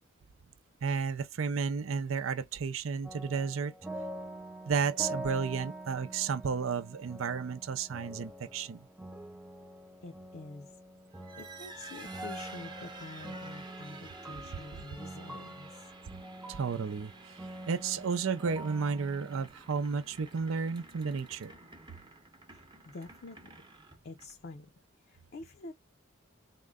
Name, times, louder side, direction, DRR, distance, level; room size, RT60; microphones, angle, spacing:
voice 1, 0.8-3.7 4.7-8.9 16.5-17.3 17.7-21.5, right 5 dB, 80° right, 0.5 m, -32 dB
sound 1, 3.0-19.5, right 1 dB, 5° right, 0.4 m, -45 dB
voice 2, 10.0-10.7 11.1-15.9 22.5-23.5 24.0-24.7 25.0-25.7, left 3 dB, 50° left, 0.5 m, -47 dB
sound 2, 11.1-24.6, right 3 dB, 20° right, 0.7 m, -51 dB
3.7 x 2.1 x 3.6 m
head